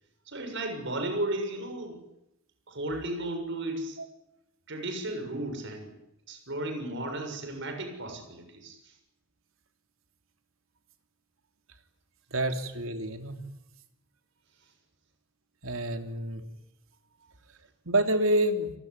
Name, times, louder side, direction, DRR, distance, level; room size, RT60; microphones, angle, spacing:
voice 1, 0.3-2.0 2.7-4.0 4.7-5.9 6.3-8.9, right 1 dB, 60° right, 6 dB, 6.7 m, -34 dB
voice 2, 12.3-13.4 15.6-16.4 17.8-18.7, right 1 dB, 80° right, 7 dB, 3.3 m, -27 dB
30.0 x 19.5 x 9.7 m, 0.88 s
head